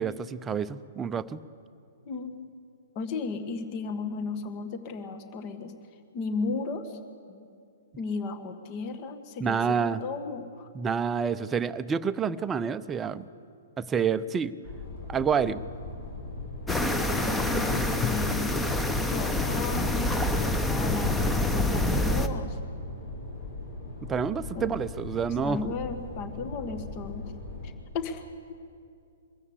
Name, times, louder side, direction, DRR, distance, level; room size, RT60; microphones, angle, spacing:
voice 1, 0.0-1.4 9.4-10.0 10.7-13.2 13.8-14.5 15.1-15.6 24.1-25.7, right 6 dB, 15° right, 12 dB, 0.6 m, -28 dB
voice 2, 2.0-2.5 2.9-5.7 6.1-7.0 7.3-7.5 8.0-10.7 17.2-18.6 19.0-22.6 24.5-24.7 25.4-27.3 27.6-28.5, left 4 dB, 35° left, 10 dB, 1.4 m, -35 dB
sound 1, 14.6-27.7, left 2 dB, 50° left, 4.6 m, -39 dB
sound 2, 16.7-22.3, left 2 dB, 5° left, 1.0 m, -26 dB
23.5 x 14.0 x 8.3 m, 2.5 s
figure-of-eight pair, 115°, 0 cm